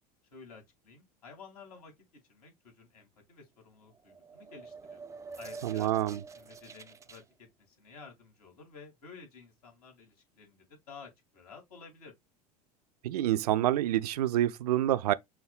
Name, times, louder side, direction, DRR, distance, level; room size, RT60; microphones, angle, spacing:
voice 1, 0.3-1.9 2.3-5.0 5.4-12.1, left 5 dB, 75° left, 2.3 m, -52 dB
sound 1, 3.9-7.2, right 4 dB, 15° right, 0.4 m, -47 dB
voice 2, 5.6-6.2 13.0-15.1, right 13 dB, 75° right, 0.4 m, -27 dB
5.8 x 2.7 x 2.3 m
hypercardioid pair, 80°, 20 cm